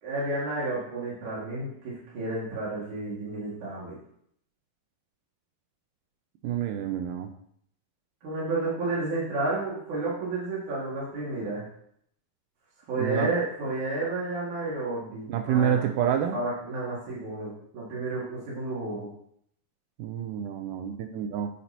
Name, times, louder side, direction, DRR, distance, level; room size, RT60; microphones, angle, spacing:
voice 1, 0.0-4.0 8.2-11.6 12.9-19.1, right 2 dB, 55° right, -7 dB, 3.3 m, -31 dB
voice 2, 6.4-7.3 13.0-13.3 15.3-16.4 20.0-21.5, right 9 dB, 85° right, 6 dB, 1.9 m, -28 dB
9.3 x 8.6 x 2.9 m, 0.69 s
omnidirectional pair, 4.4 m